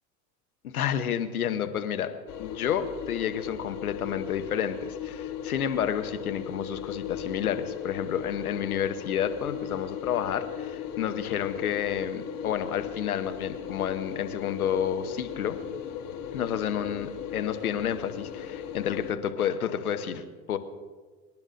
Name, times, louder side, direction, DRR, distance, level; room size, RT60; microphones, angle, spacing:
voice 1, 0.6-2.1 2.4-15.6 16.3-20.6, left 9 dB, 90° left, 9 dB, 0.9 m, -30 dB
sound 1, 2.3-19.1, left 9 dB, 45° left, 1.3 m, -37 dB
25.0 x 10.5 x 2.6 m, 1.4 s
hypercardioid pair, 75°, 42 cm